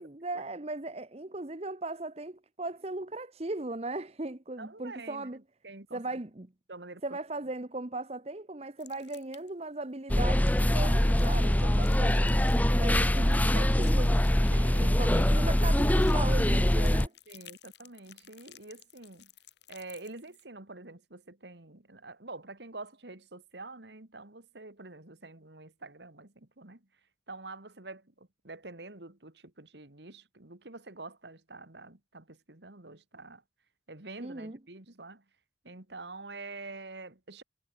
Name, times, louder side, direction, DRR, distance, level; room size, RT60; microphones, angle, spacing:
voice 1, 0.0-5.4 5.9-6.5 7.0-12.4 12.8-14.2 14.8-17.1 34.2-34.6, right 2 dB, 35° right, 1.1 m, -38 dB
voice 2, 4.6-6.2 6.7-7.2 14.5-15.0 17.3-19.3 19.7-26.9 27.3-33.4 33.9-35.2 35.6-37.4, right 3 dB, 70° right, 2.4 m, -46 dB
sound 1, 8.8-9.6 10.1-20.4, left 12 dB, 75° left, 7.2 m, -55 dB
sound 2, 10.1-17.1, left 1 dB, 10° left, 0.6 m, -24 dB
head